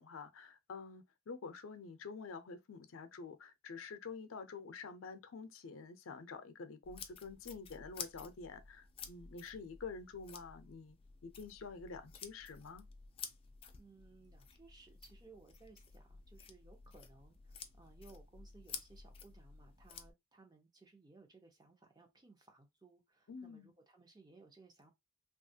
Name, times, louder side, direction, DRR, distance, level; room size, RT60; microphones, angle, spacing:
voice 1, 0.0-11.0 11.2-12.9 23.3-23.7, left 4 dB, 80° left, 0.5 m, -48 dB
sound 1, 6.8-20.1, left 6 dB, 30° left, 0.4 m, -52 dB
voice 2, 13.8-24.9, right 3 dB, 20° right, 0.6 m, -61 dB
2.9 x 2.3 x 2.7 m
head